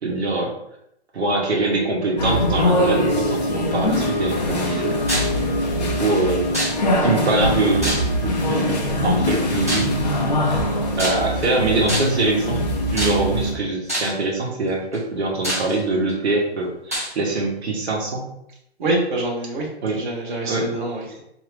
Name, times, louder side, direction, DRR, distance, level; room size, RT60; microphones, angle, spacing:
voice 1, 0.0-0.5 1.1-5.0 5.8-6.5 7.0-9.9 10.9-12.6 12.9-18.3 19.8-20.0 20.5-20.7, right 2 dB, 75° right, -2 dB, 1.2 m, -23 dB
sound 1, 2.2-13.5, left 1 dB, 40° left, 0.6 m, -22 dB
sound 2, 5.1-5.4 6.5-7.1 7.8-8.4 9.7-10.0 11.0-11.5 11.9-12.3 13.0-13.4 13.9-14.2 14.9-15.0 15.4-16.1 16.9-17.1, equal, 15° right, 0.4 m, -26 dB
voice 2, 18.8-21.2, right 2 dB, 45° right, -3 dB, 1.2 m, -25 dB
3.7 x 2.9 x 3.3 m, 0.78 s
hypercardioid pair, 170°, 33 cm